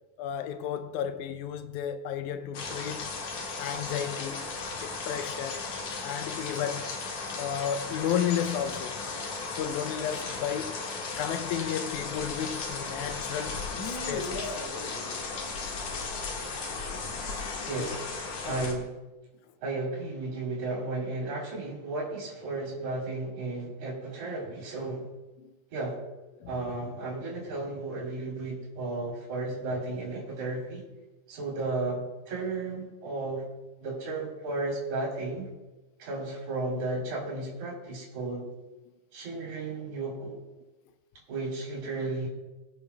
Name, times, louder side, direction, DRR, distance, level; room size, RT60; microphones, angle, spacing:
voice 1, 0.2-3.1 3.6-5.6 6.0-7.0 7.4-9.0 9.6-10.9 11.2-14.6 17.8-18.0 18.3-18.7 25.4-25.5 26.4-26.5, left 9 dB, 85° left, 2.1 m, -33 dB
sound 1, 2.5-18.7, left 4 dB, 70° left, 2.9 m, -35 dB
voice 2, 17.7-18.0 18.5-19.0 19.6-25.1 25.7-26.0 26.5-30.8 31.3-33.4 33.8-35.5 36.0-38.5 39.1-40.4 41.3-42.3, right 2 dB, 70° right, 4.5 m, -34 dB
24.0 x 8.8 x 2.2 m
omnidirectional pair, 3.4 m